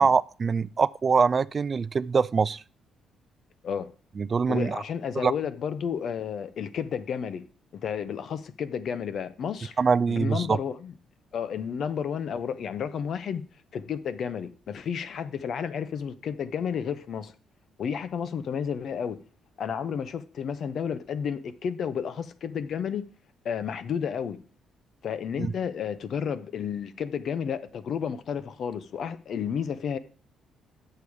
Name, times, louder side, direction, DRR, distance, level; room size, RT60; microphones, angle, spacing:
voice 1, 0.0-2.6 4.2-4.8 5.2-5.3 9.8-10.6 25.4-25.5, right 5 dB, 40° right, 0.3 m, -23 dB
voice 2, 4.5-7.4 7.7-9.8 10.1-11.0 11.3-13.4 13.7-17.3 17.8-19.2 19.6-23.0 23.4-24.4 25.0-30.0, left 7 dB, 60° left, 0.8 m, -31 dB
8.5 x 6.8 x 4.7 m
cardioid pair, 90°, 0 cm